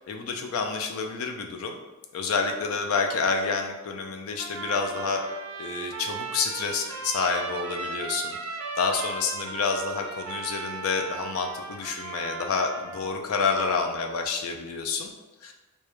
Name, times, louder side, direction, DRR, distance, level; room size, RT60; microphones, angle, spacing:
voice 1, 0.1-1.8 2.1-5.2 5.6-8.4 8.8-15.1 15.4-15.5, left 4 dB, 70° left, 4 dB, 0.3 m, -28 dB
Trumpet, 4.4-13.2, right 4 dB, 90° right, 0.4 m, -37 dB
2.2 x 2.0 x 2.9 m, 1.1 s
head